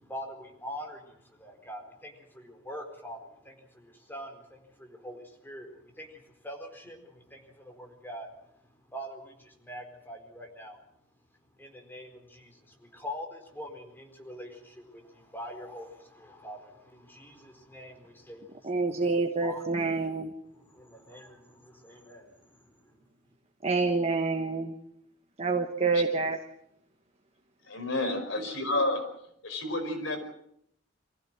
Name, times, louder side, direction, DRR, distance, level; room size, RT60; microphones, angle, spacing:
voice 1, 0.0-8.3 8.9-10.8 11.6-19.8 20.4-23.1, equal, 10° left, 3 dB, 4.4 m, -44 dB
voice 2, 18.6-20.3 23.6-24.7 25.4-26.4, right 3 dB, 35° right, 5 dB, 1.3 m, -27 dB
voice 3, 27.6-29.0 29.4-30.2, left 2 dB, 80° left, 4 dB, 5.3 m, -30 dB
24.5 x 15.5 x 7.6 m, 0.73 s
head